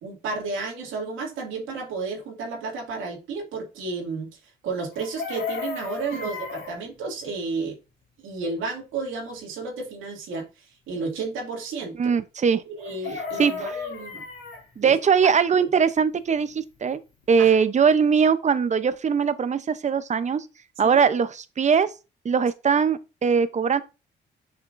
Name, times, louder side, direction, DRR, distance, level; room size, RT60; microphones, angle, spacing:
voice 1, 0.0-4.3 4.6-7.8 8.2-10.4 10.9-12.0 12.7-14.2 14.8-15.0 17.4-17.5 20.8-21.0, right 4 dB, 90° right, 2.4 m, -32 dB
Chicken rooster, 4.9-6.7 12.8-14.6 16.9-17.0 17.2-17.5, left 5 dB, 75° left, 2.5 m, -34 dB
voice 2, 12.0-12.6 13.4-13.5 14.8-17.0 17.3-20.4 20.8-21.9 22.2-23.8, right 6 dB, 35° right, 0.7 m, -21 dB
6.9 x 5.8 x 2.6 m
cardioid pair, 90°, 20 cm